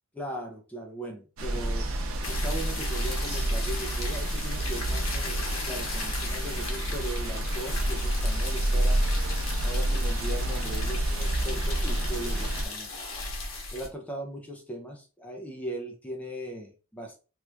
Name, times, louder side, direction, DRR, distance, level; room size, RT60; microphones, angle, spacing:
voice 1, 0.1-1.9 2.2-5.4 5.6-9.0 9.6-12.9 13.7-17.2, right 1 dB, 5° left, 1 dB, 0.5 m, -38 dB
sound 1, 1.4-12.6, right 1 dB, 85° right, 0.6 m, -29 dB
sound 2, 2.2-13.9, left 3 dB, 85° left, 1.1 m, -37 dB
3.0 x 2.4 x 3.3 m, 0.34 s
head